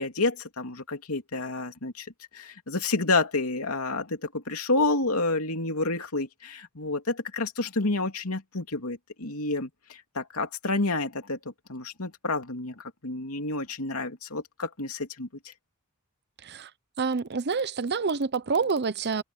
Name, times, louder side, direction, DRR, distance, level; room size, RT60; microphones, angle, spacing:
voice 1, 0.0-2.1 2.3-15.5, left 3 dB, 85° left, 2.8 m, -29 dB
voice 2, 17.0-19.2, right 5 dB, 50° right, 0.8 m, -27 dB
head